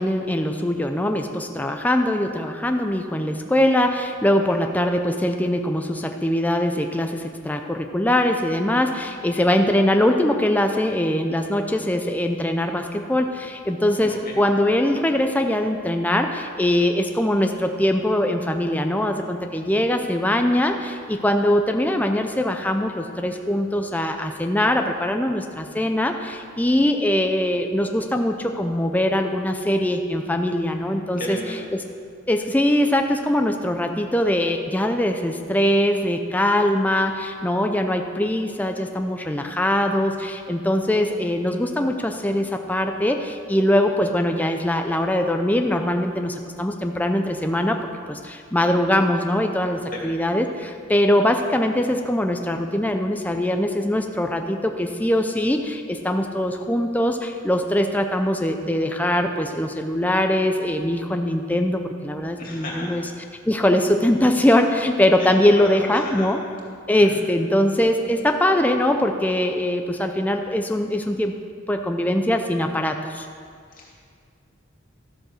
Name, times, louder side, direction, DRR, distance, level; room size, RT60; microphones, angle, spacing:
voice 1, 0.0-31.4 32.3-47.8 48.1-63.0 63.5-66.4 66.9-71.3 71.7-73.3, left 1 dB, 10° left, 4 dB, 0.5 m, -22 dB
voice 2, 14.0-14.3 31.0-31.5 49.9-50.0 62.4-63.2 65.2-66.3 67.0-67.1 73.7-74.0, left 1 dB, 45° left, -3 dB, 2.6 m, -35 dB
12.5 x 7.9 x 6.3 m, 2.2 s
head